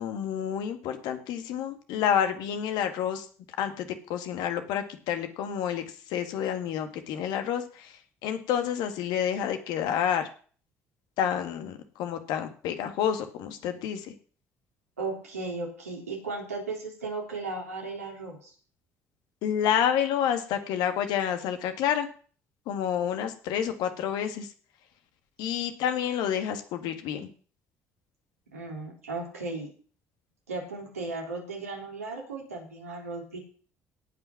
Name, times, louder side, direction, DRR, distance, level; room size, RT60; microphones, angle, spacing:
voice 1, 0.0-3.3 3.6-10.3 11.2-14.1 19.4-22.1 22.7-24.5 25.4-27.3, left 9 dB, 65° left, 7 dB, 1.9 m, -29 dB
voice 2, 15.0-18.5 28.5-29.7 30.5-33.4, right 3 dB, 90° right, -1 dB, 3.7 m, -36 dB
18.0 x 6.0 x 5.9 m, 0.43 s
hypercardioid pair, 50°, 8 cm